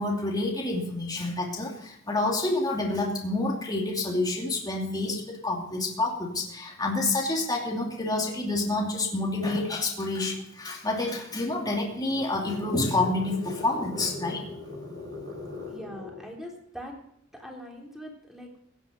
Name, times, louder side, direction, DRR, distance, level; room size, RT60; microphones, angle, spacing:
voice 1, 0.0-14.4, left 2 dB, 20° left, -1 dB, 2.6 m, -28 dB
sound 1, 11.6-16.3, left 2 dB, 60° right, 8.0 m, -40 dB
voice 2, 15.6-16.9 17.3-18.6, equal, ahead, 0 dB, 3.5 m, -42 dB
16.5 x 10.0 x 5.3 m, 0.71 s
head